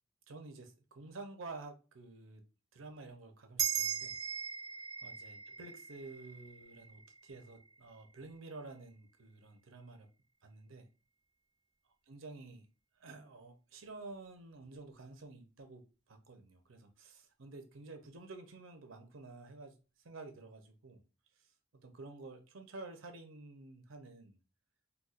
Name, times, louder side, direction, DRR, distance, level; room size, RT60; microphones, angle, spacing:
voice 1, 0.3-2.4 2.7-4.2 5.0-10.1 10.4-10.9 12.1-12.7 13.0-19.8 20.0-21.0 21.7-24.4, right 3 dB, 80° right, 0.7 m, -50 dB
sound 1, 3.6-8.3, right 8 dB, 20° right, 0.4 m, -39 dB
4.1 x 2.3 x 2.4 m
head